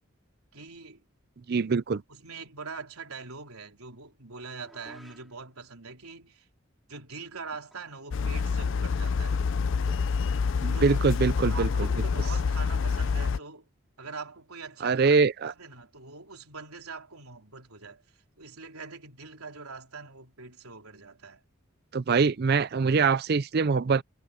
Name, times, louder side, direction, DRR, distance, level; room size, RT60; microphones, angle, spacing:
voice 1, 0.5-1.0 1.5-6.5 6.9-9.5 10.7-11.0 11.5-13.7 14.0-15.2 15.4-18.0 18.4-21.4, right 4 dB, 85° right, 3.9 m, -43 dB
voice 2, 1.5-2.0 10.6-11.9 14.8-15.5 21.9-24.0, right 4 dB, 45° right, 0.5 m, -24 dB
sound 1, 4.6-5.5 7.7-8.1 8.3-8.4 9.9-10.2, equal, ahead, 6.0 m, -54 dB
sound 2, 8.1-13.4, left 5 dB, 60° left, 0.4 m, -27 dB
head